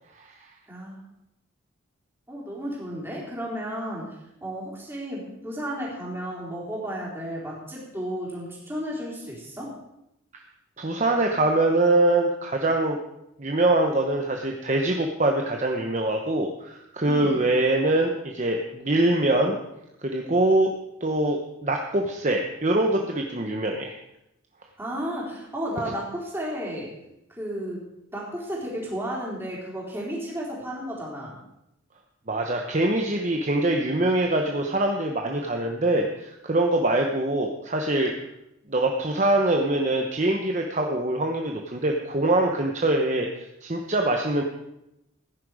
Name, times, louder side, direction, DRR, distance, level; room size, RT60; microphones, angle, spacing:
voice 1, 0.7-1.0 2.3-4.2 4.4-9.7 17.0-17.5 24.8-26.9 27.3-27.8 28.1-31.3, equal, 10° right, -5 dB, 3.9 m, -33 dB
voice 2, 10.8-13.0 13.4-19.6 20.0-20.7 21.0-23.9 32.3-38.1 38.7-44.4, right 2 dB, 35° right, 2 dB, 0.9 m, -23 dB
16.0 x 10.5 x 4.9 m, 0.87 s
head